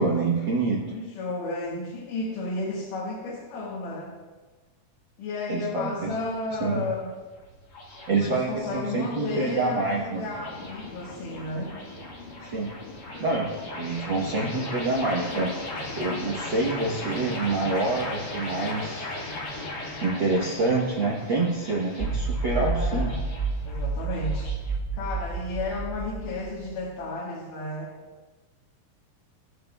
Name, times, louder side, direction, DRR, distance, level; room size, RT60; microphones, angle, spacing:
voice 1, 0.0-0.8 5.5-6.1 6.6-6.8 8.1-10.2 12.4-12.7 13.2-15.5 16.0-19.1 20.0-23.1, right 3 dB, 75° right, -3 dB, 1.0 m, -26 dB
voice 2, 0.9-4.1 5.2-7.1 8.1-11.7 22.6-23.2 23.6-24.5 24.9-27.9, left 2 dB, 75° left, -5 dB, 3.2 m, -33 dB
sound 1, 5.8-24.7, left 2 dB, 50° left, 2.1 m, -38 dB
sound 2, 22.0-26.8, right 3 dB, 10° left, 1.0 m, -30 dB
20.5 x 7.2 x 2.3 m, 1.3 s
omnidirectional pair, 3.9 m